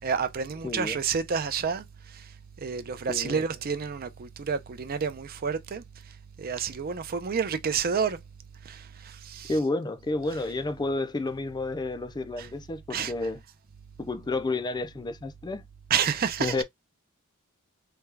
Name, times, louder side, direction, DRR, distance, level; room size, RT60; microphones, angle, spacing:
voice 1, 0.0-1.8 2.6-5.8 6.4-8.2 8.7-9.5 12.9-13.1 15.9-16.5, right 6 dB, 45° right, 0.5 m, -29 dB
voice 2, 0.6-1.0 3.1-3.4 9.5-13.4 14.0-15.6 16.4-16.6, left 2 dB, 20° left, 0.4 m, -30 dB
3.4 x 2.3 x 3.2 m
head